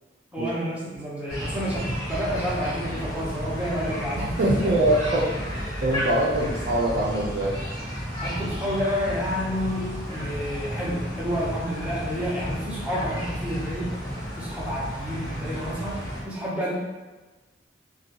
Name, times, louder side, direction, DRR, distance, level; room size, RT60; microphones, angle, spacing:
voice 1, 0.3-4.7 8.2-14.0 14.4-16.7, equal, 5° right, -7 dB, 0.6 m, -30 dB
sound 1, 1.3-16.2, equal, 25° left, 1.3 m, -32 dB
voice 2, 4.2-7.5, right 1 dB, 55° right, -6 dB, 0.4 m, -24 dB
2.3 x 2.2 x 2.8 m, 1.2 s
head